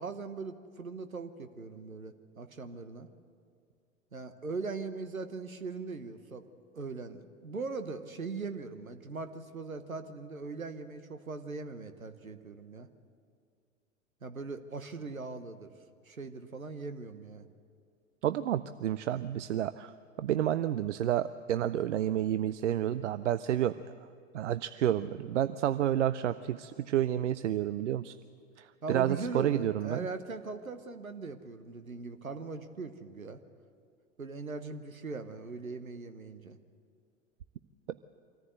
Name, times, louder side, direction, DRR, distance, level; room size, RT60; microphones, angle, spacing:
voice 1, 0.0-3.1 4.1-6.5 6.7-12.9 14.2-15.7 16.0-17.5 28.8-33.4 34.2-36.6, right 4 dB, 85° right, 10 dB, 1.1 m, -40 dB
voice 2, 18.2-23.7 24.3-28.2 28.6-30.1, right 11 dB, 60° right, 14 dB, 0.6 m, -30 dB
24.5 x 14.5 x 7.9 m, 2.2 s
figure-of-eight pair, 90°, 40 cm